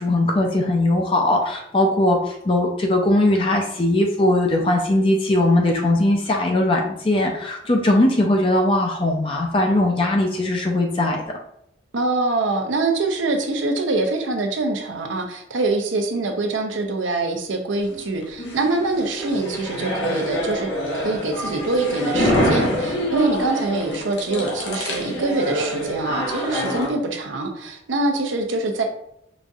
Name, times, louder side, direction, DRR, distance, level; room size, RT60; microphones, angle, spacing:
voice 1, 0.0-11.2, left 1 dB, 30° left, 1 dB, 0.4 m, -19 dB
voice 2, 11.9-20.7 20.9-28.8, right 2 dB, 85° right, 4 dB, 0.7 m, -24 dB
sound 1, 17.9-26.9, equal, 70° left, 0.9 m, -25 dB
5.0 x 2.6 x 2.4 m, 0.75 s
head